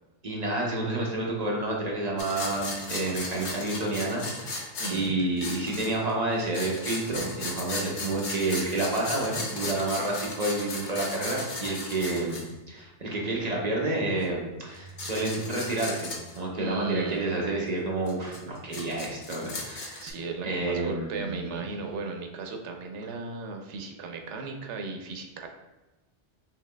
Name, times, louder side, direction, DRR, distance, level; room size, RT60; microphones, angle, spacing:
voice 1, 0.2-4.6 4.9-12.4 12.7-20.1 20.4-21.6, right 2 dB, 40° right, -2 dB, 0.8 m, -29 dB
sound 1, 2.2-6.1 6.4-12.5 14.2-14.3 14.8-16.4 18.1-20.1, left 2 dB, 80° left, 1.1 m, -36 dB
voice 2, 4.8-5.1 16.6-17.3 20.0-25.5, right 3 dB, 85° right, 4 dB, 0.9 m, -36 dB
5.7 x 2.8 x 2.2 m, 1.1 s
omnidirectional pair, 1.2 m